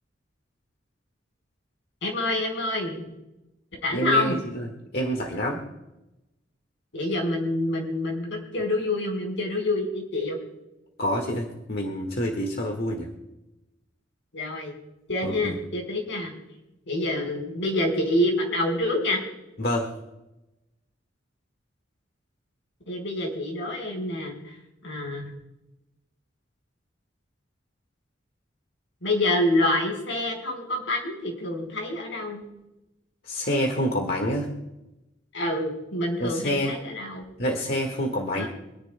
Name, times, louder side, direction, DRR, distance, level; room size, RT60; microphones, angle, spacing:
voice 1, 2.0-3.0 3.8-4.4 6.9-10.4 14.3-14.8 15.1-16.3 16.9-19.2 22.9-24.6 24.8-25.3 29.0-32.4 35.3-37.3 38.3-38.5, left 1 dB, 80° left, 1 dB, 4.3 m, -27 dB
voice 2, 3.9-4.7 4.9-5.6 11.0-13.1 15.2-15.5 19.6-19.9 33.2-34.5 36.2-36.7 37.4-38.5, equal, 55° left, 2 dB, 1.6 m, -27 dB
26.0 x 10.5 x 2.2 m, 0.95 s
head